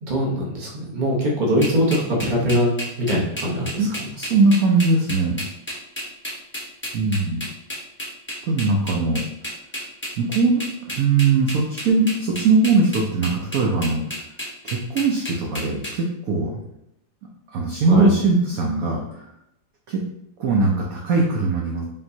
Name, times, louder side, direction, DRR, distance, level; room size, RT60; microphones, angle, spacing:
voice 1, 0.0-4.1 17.9-18.1, equal, 35° right, -3 dB, 0.8 m, -22 dB
sound 1, 1.6-15.9, equal, 15° left, 0.5 m, -31 dB
voice 2, 3.8-5.4 6.9-7.5 8.5-9.2 10.2-14.0 14.6-16.6 17.5-19.3 19.9-20.0 20.4-21.9, right 3 dB, 70° right, -1 dB, 0.8 m, -20 dB
5.4 x 2.9 x 2.7 m, 0.79 s
omnidirectional pair, 2.1 m